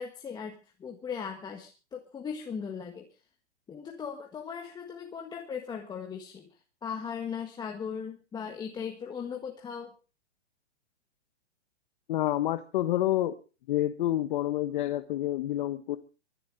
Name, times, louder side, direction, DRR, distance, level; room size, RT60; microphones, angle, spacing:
voice 1, 0.0-3.1 3.7-6.5 6.8-9.9, left 6 dB, 10° left, 2 dB, 1.5 m, -38 dB
voice 2, 12.1-13.4 13.7-16.0, left 13 dB, 45° left, 8 dB, 1.2 m, -28 dB
23.5 x 8.4 x 5.2 m, 0.35 s
hypercardioid pair, 145°, 35 cm